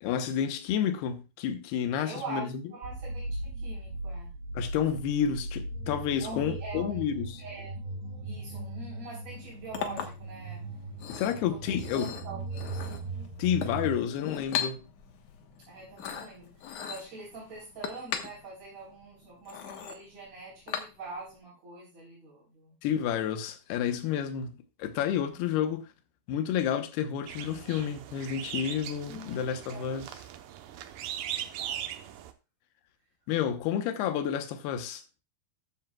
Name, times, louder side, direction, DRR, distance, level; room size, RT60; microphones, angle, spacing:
voice 1, 0.0-2.5 4.5-7.4 11.1-12.1 13.4-14.8 22.8-25.9 26.3-30.1 33.3-35.0, left 9 dB, 85° left, 3.0 m, -30 dB
voice 2, 1.9-4.3 6.2-7.0 7.4-7.7 8.2-10.6 11.2-12.9 15.7-22.7 25.2-25.4 29.1-29.4 29.7-29.9 31.4-32.1, right 3 dB, 45° right, 5.1 m, -44 dB
sound 1, 2.8-13.9, right 2 dB, 90° right, 3.8 m, -38 dB
Chink clink, 9.3-21.3, left 8 dB, 65° left, 2.3 m, -39 dB
sound 2, 27.3-32.3, right 10 dB, 75° right, 2.3 m, -39 dB
13.5 x 10.5 x 2.3 m
omnidirectional pair, 4.5 m